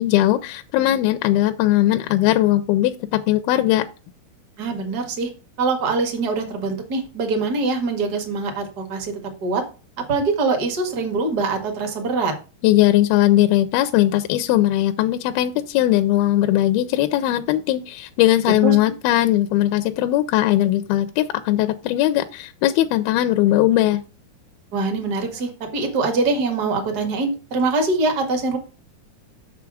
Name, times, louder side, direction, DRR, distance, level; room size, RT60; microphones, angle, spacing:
voice 1, 0.0-3.9 12.6-24.0, left 14 dB, 80° left, 9 dB, 2.3 m, -19 dB
voice 2, 4.6-5.3 5.6-9.6 10.0-12.3 18.6-18.8 24.7-28.6, right 3 dB, 45° right, 4 dB, 1.3 m, -23 dB
7.0 x 6.7 x 4.8 m, 0.33 s
omnidirectional pair, 4.6 m